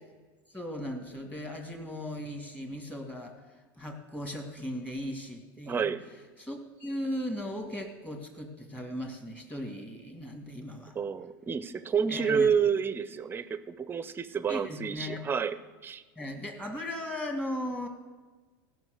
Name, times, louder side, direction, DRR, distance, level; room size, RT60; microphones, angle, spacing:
voice 1, 0.5-3.3 3.8-5.9 6.4-10.9 12.1-12.5 14.5-15.2 16.2-17.9, left 1 dB, 10° left, 3 dB, 1.9 m, -37 dB
voice 2, 5.7-6.0 11.0-15.6 15.8-16.0, right 6 dB, 20° right, 13 dB, 0.6 m, -29 dB
15.5 x 6.1 x 6.5 m, 1.3 s
supercardioid pair, 120°, 11 cm